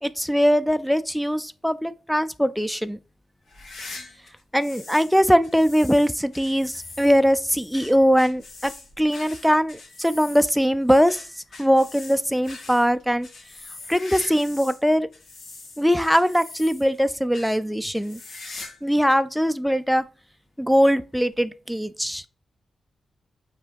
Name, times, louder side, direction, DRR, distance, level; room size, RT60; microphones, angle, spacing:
voice 1, 0.0-3.0 4.5-8.7 9.0-11.2 11.6-13.3 13.9-15.1 15.8-18.2 18.8-20.0 20.6-22.2, equal, ahead, 0.4 m, -21 dB
sound 1, 3.4-5.1 5.4-14.8 15.1-17.0 17.3-17.6 17.9-18.8 19.1-19.2 20.0-20.1 21.3-21.4, left 3 dB, 75° left, 3.1 m, -42 dB
6.0 x 4.4 x 5.1 m
wide cardioid pair, 150°, 0 cm